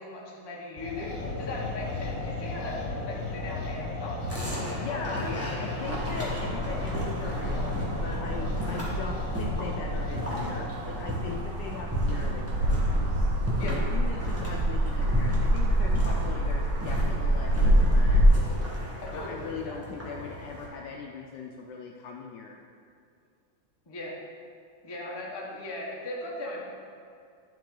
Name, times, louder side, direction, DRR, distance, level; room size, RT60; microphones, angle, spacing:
voice 1, 0.0-4.2 4.8-5.4 13.5-13.8 19.0-19.8 23.9-24.2 24.8-26.6, left 2 dB, 25° left, -3 dB, 0.6 m, -38 dB
sound 1, 0.8-10.7, left 3 dB, 55° left, 1.1 m, -36 dB
sound 2, 4.2-20.7, left 1 dB, 10° right, 1.1 m, -35 dB
voice 2, 4.8-13.3 13.7-18.4 19.1-22.6, left 5 dB, 75° left, 1 dB, 1.0 m, -40 dB
sound 3, 5.8-18.3, equal, 70° right, 1.3 m, -27 dB
10.5 x 4.7 x 3.8 m, 2.3 s
omnidirectional pair, 2.2 m